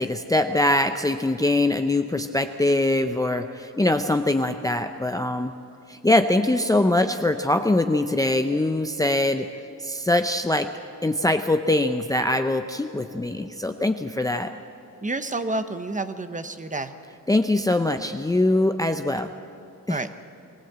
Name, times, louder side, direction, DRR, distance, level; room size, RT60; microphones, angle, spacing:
voice 1, 0.0-5.5 5.9-9.5 9.8-10.7 11.0-14.5 17.3-19.3 19.9-20.0, left 1 dB, 10° left, 7 dB, 0.6 m, -22 dB
voice 2, 15.0-16.9 19.9-20.1, right 2 dB, 20° right, 10 dB, 1.0 m, -29 dB
22.0 x 16.0 x 8.1 m, 2.6 s
wide cardioid pair, 115°, 34 cm